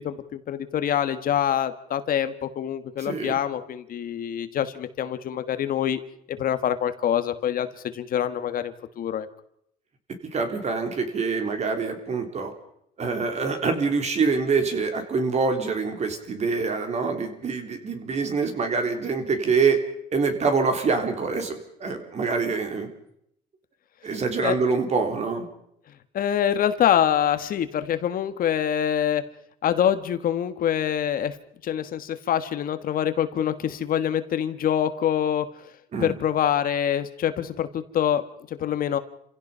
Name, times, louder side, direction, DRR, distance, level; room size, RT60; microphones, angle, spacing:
voice 1, 0.0-6.0 6.4-7.7 7.9-9.3 24.4-24.6 26.1-29.2 29.6-31.3 31.6-35.5 36.0-38.2 38.5-39.0, left 10 dB, 55° left, 11 dB, 1.5 m, -25 dB
voice 2, 3.0-3.4 10.3-12.5 13.0-19.8 20.1-22.9 24.0-25.5 35.9-36.1, right 4 dB, 40° right, 6 dB, 3.6 m, -25 dB
28.5 x 16.0 x 5.6 m, 0.72 s
cardioid pair, 110°, 17 cm